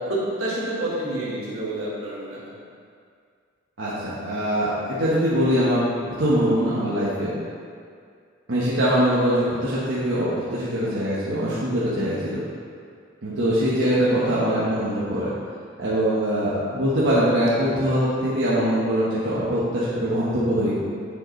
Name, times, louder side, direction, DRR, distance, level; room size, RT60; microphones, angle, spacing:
voice 1, 0.0-2.5, right 1 dB, 80° right, -6 dB, 1.8 m, -28 dB
voice 2, 3.8-5.8 6.2-7.3 8.5-12.4 13.2-15.3 15.8-20.7, equal, 60° right, -9 dB, 1.2 m, -22 dB
7.3 x 6.7 x 3.2 m, 2.2 s
head